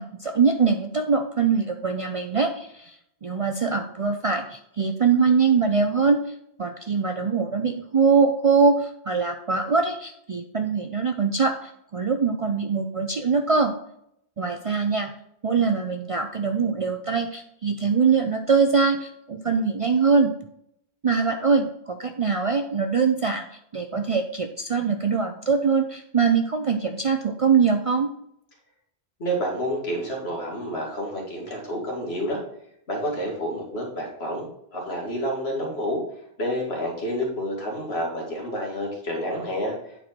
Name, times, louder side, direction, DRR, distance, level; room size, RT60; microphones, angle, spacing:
voice 1, 0.0-3.0 3.2-6.2 6.6-13.7 14.4-15.1 15.4-20.3 21.0-28.1, right 5 dB, 50° right, 6 dB, 0.4 m, -23 dB
voice 2, 29.2-32.4 32.9-36.0 36.4-40.0, equal, 75° left, -1 dB, 2.2 m, -29 dB
8.9 x 4.5 x 4.3 m, 0.75 s
omnidirectional pair, 1.1 m